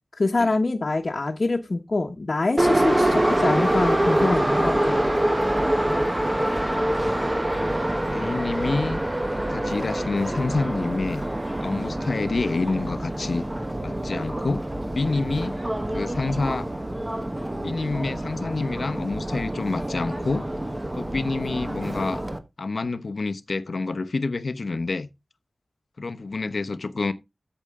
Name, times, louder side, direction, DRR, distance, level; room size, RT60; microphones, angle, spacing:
voice 1, 0.2-5.0, left 3 dB, 50° left, 1.2 m, -25 dB
Subway metro underground, 2.6-22.4, right 1 dB, 20° right, 1.1 m, -26 dB
voice 2, 8.1-9.0 9.5-11.2 11.6-13.4 13.8-14.6 14.9-15.6 15.9-16.7 17.6-20.5 21.0-22.2 22.6-25.1 26.0-27.1, left 3 dB, 65° left, 0.9 m, -28 dB
8.5 x 8.1 x 3.6 m
wide cardioid pair, 95°, 0 cm